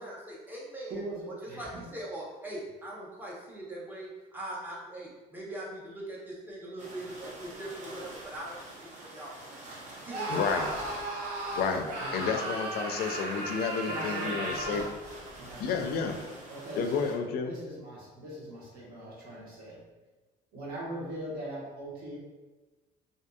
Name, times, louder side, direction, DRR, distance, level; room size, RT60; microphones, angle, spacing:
voice 1, 0.0-1.0 1.3-9.5 10.0-10.5, right 1 dB, 10° right, -5 dB, 0.8 m, -41 dB
voice 2, 0.8-1.9 12.0-12.2 13.8-14.9 15.3-19.8 20.5-22.2, right 1 dB, 60° right, -6 dB, 1.2 m, -41 dB
sound 1, 6.8-17.1, right 1 dB, 45° right, 0.7 m, -47 dB
Screaming, 10.1-14.9, right 1 dB, 90° right, 0.7 m, -35 dB
voice 3, 10.3-10.7 11.5-14.8 15.6-16.2 16.8-17.5, left 5 dB, 65° left, 5 dB, 0.4 m, -31 dB
2.7 x 2.6 x 2.3 m, 1.2 s
cardioid pair, 110°, 17 cm